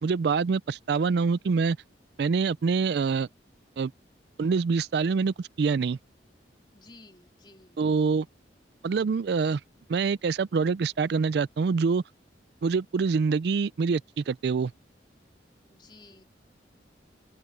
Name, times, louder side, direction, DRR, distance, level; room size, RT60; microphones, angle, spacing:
voice 1, 0.0-1.8 2.2-3.3 3.8-3.9 4.4-6.0 7.8-8.3 8.8-9.6 9.9-12.0 12.6-14.7, right 5 dB, 60° right, 0.4 m, -25 dB
voice 2, 6.7-7.8 15.7-16.2, left 2 dB, 25° left, 3.1 m, -53 dB
open air
head